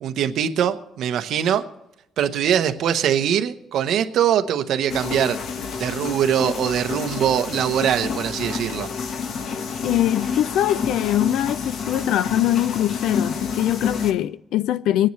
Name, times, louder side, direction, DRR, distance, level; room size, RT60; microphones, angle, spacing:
voice 1, 0.0-1.6 2.2-5.4 5.8-8.9, right 9 dB, 65° right, 1.0 m, -22 dB
sound 1, 4.9-14.1, left 5 dB, 55° left, 1.2 m, -28 dB
voice 2, 9.8-15.1, left 13 dB, 80° left, 0.3 m, -22 dB
25.0 x 10.0 x 3.2 m
cardioid pair, 155°, 0 cm